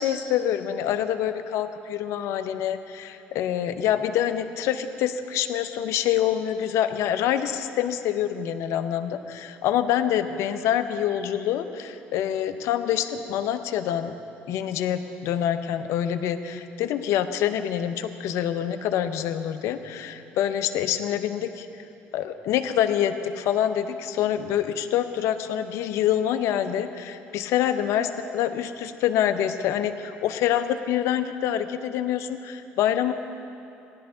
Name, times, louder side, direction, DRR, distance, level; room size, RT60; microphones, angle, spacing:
voice 1, 0.0-14.2 14.5-21.7 22.1-33.1, left 10 dB, 70° left, 9 dB, 0.7 m, -26 dB
17.0 x 11.5 x 3.8 m, 2.7 s
supercardioid pair, 70°, 5 cm